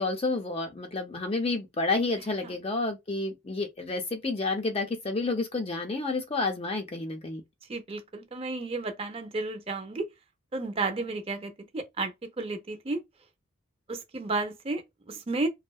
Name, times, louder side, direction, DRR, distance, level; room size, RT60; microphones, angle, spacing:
voice 1, 0.0-7.4, left 3 dB, 25° left, 0.5 m, -30 dB
voice 2, 7.7-10.1 10.5-13.0 13.9-15.5, right 3 dB, 25° right, 0.4 m, -32 dB
2.6 x 2.0 x 2.3 m
head